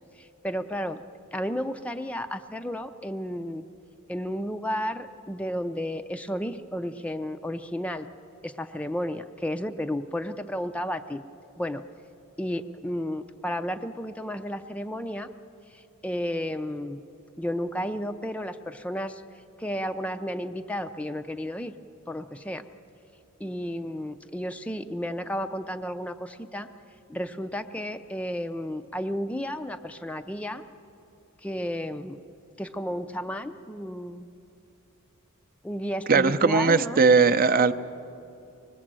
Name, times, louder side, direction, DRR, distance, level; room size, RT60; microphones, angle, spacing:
voice 1, 0.2-1.0 1.3-3.6 4.1-8.1 8.4-11.2 11.6-11.8 12.4-15.3 15.7-17.0 17.4-19.2 19.6-21.7 22.1-22.6 23.4-26.7 27.1-30.6 31.4-32.2 32.6-34.2 35.6-37.0, equal, 5° left, 7 dB, 0.4 m, -32 dB
voice 2, 36.1-37.7, right 4 dB, 40° right, 9 dB, 0.6 m, -19 dB
25.0 x 20.5 x 7.5 m, 2.8 s
head